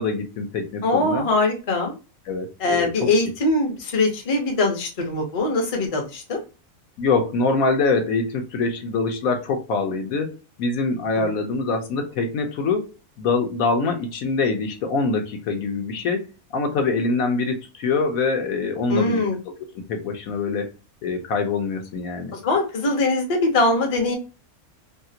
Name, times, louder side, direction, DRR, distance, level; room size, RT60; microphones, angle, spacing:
voice 1, 0.0-1.3 2.3-3.1 7.0-12.9 13.2-20.7 21.0-22.3, left 4 dB, 75° left, 4 dB, 1.1 m, -24 dB
voice 2, 0.8-2.0 2.6-6.4 11.2-11.3 18.9-19.4 22.3-24.2, left 2 dB, 35° left, 1 dB, 0.6 m, -22 dB
2.8 x 2.4 x 2.7 m, 0.31 s
omnidirectional pair, 1.5 m